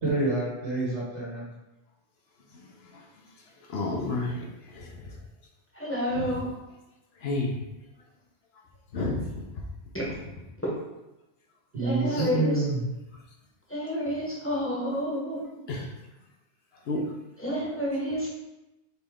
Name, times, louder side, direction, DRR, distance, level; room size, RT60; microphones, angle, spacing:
voice 1, 0.0-1.4 11.7-12.9, right 2 dB, 80° right, -6 dB, 1.8 m, -27 dB
voice 2, 2.5-3.1 3.7-5.2 6.1-6.4 7.2-7.6 8.9-9.3 12.1-12.3 15.7-15.9 16.9-17.1, left 2 dB, 65° left, 0 dB, 1.0 m, -32 dB
voice 3, 5.7-6.5 9.9-10.1 10.6-10.7 11.8-12.7 13.7-15.4 17.4-18.3, equal, 10° left, -5 dB, 0.9 m, -29 dB
4.3 x 3.2 x 3.5 m, 0.98 s
omnidirectional pair, 1.2 m